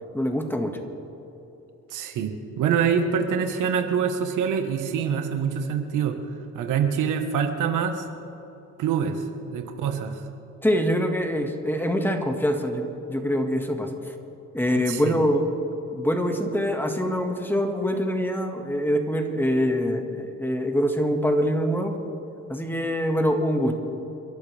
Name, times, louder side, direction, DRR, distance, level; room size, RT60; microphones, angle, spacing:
voice 1, 0.1-0.8 10.6-13.9 14.5-15.4 15.9-21.9 22.5-23.8, equal, 5° left, 4 dB, 1.9 m, -24 dB
voice 2, 1.9-2.3 2.6-6.2 6.5-8.1 8.8-10.2 14.8-15.2, right 7 dB, 90° right, 5 dB, 1.5 m, -25 dB
29.5 x 12.0 x 3.5 m, 3.0 s
cardioid pair, 90°, 30 cm